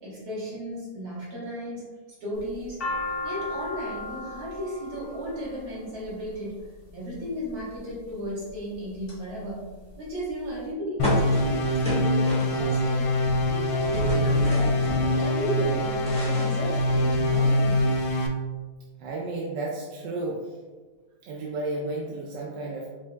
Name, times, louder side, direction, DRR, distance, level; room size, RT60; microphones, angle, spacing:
voice 1, 0.0-1.9 2.2-2.8 3.2-9.7 10.0-13.1 13.5-17.9, equal, 60° right, -7 dB, 1.8 m, -34 dB
sound 1, 2.4-6.6 7.4-7.9 8.5-9.2 9.5-9.6 9.8-10.6, left 2 dB, 50° left, 0.7 m, -35 dB
sound 2, 11.0-18.3, left 1 dB, 90° left, 1.2 m, -24 dB
sound 3, 11.0-12.9 13.2-15.3 15.7-17.3, left 1 dB, 10° left, 0.4 m, -33 dB
voice 2, 19.0-20.6 21.2-22.9, right 2 dB, 85° right, -3 dB, 1.2 m, -32 dB
5.1 x 2.5 x 2.2 m, 1.3 s
omnidirectional pair, 1.9 m